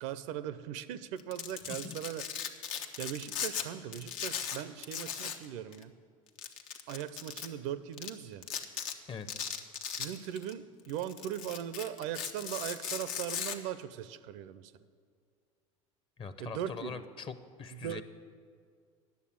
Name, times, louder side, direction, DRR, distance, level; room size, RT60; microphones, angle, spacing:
voice 1, 0.0-2.3 3.0-5.9 6.9-8.5 10.0-14.7 16.4-17.0 17.7-18.0, right 10 dB, 65° right, 15 dB, 0.5 m, -39 dB
Domestic sounds home sounds, 1.2-3.7 3.9-5.5 5.7-5.8 6.4-7.5 8.0-8.1 8.4-8.9 9.3-10.5 10.9-13.6, left 8 dB, 75° left, 0.9 m, -38 dB
voice 2, 9.1-9.4 16.2-18.0, left 6 dB, 30° left, 11 dB, 0.8 m, -43 dB
9.6 x 7.0 x 8.6 m, 2.1 s
hypercardioid pair, 85°, 17 cm